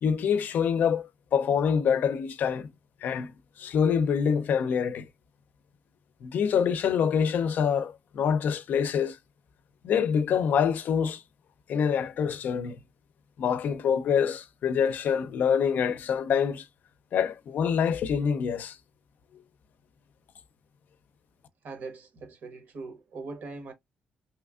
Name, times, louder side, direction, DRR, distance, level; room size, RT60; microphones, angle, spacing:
voice 1, 0.0-2.7 3.0-3.3 3.6-5.0 6.2-9.2 9.8-11.2 11.7-12.8 13.4-16.7 17.1-18.8, left 7 dB, 65° left, 0.5 m, -26 dB
voice 2, 21.6-23.7, right 3 dB, 65° right, 1.1 m, -41 dB
3.2 x 3.0 x 2.3 m
cardioid pair, 130°, 3 cm